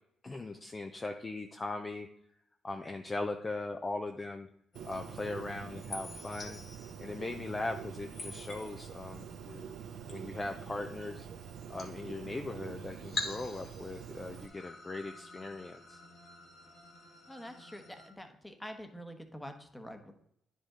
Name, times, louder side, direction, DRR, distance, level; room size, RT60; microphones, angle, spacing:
voice 1, 0.2-2.1 2.6-4.5 4.8-6.6 7.0-9.7 10.1-11.3 11.7-16.0, left 2 dB, 25° left, 5 dB, 0.6 m, -39 dB
sound 1, 4.7-18.1, left 3 dB, 50° left, 1.8 m, -47 dB
Bird, 4.8-14.5, right 8 dB, 75° right, 0.5 m, -46 dB
voice 2, 17.3-20.1, equal, 10° left, 6 dB, 1.1 m, -46 dB
9.9 x 5.2 x 3.8 m, 0.75 s
cardioid pair, 90°, 0 cm